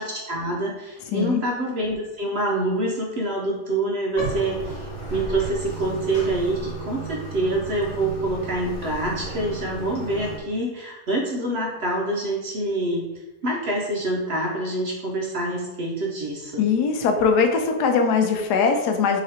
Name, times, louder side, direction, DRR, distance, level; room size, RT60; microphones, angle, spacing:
voice 1, 0.0-16.7, right 1 dB, 55° right, -2 dB, 0.7 m, -26 dB
voice 2, 1.1-1.4 16.6-19.2, left 5 dB, 85° left, 5 dB, 1.2 m, -21 dB
Bathtub (filling or washing), 4.1-10.4, right 2 dB, 45° left, 1.3 m, -33 dB
3.9 x 2.9 x 4.2 m, 1.1 s
omnidirectional pair, 1.7 m